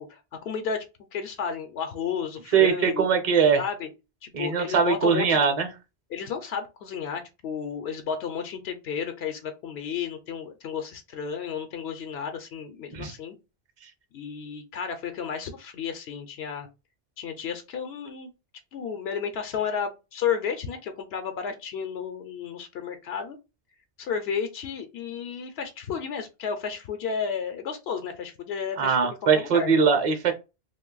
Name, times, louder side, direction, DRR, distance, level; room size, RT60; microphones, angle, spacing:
voice 1, 0.1-0.8 1.1-3.1 3.6-3.9 4.2-5.4 6.1-13.3 14.1-16.7 17.2-18.3 18.7-23.4 24.0-29.8, left 7 dB, 80° left, 0.8 m, -32 dB
voice 2, 2.5-3.6 4.3-5.7 12.9-13.1 28.8-30.3, right 6 dB, 40° right, 0.7 m, -21 dB
2.6 x 2.2 x 3.8 m
omnidirectional pair, 1.0 m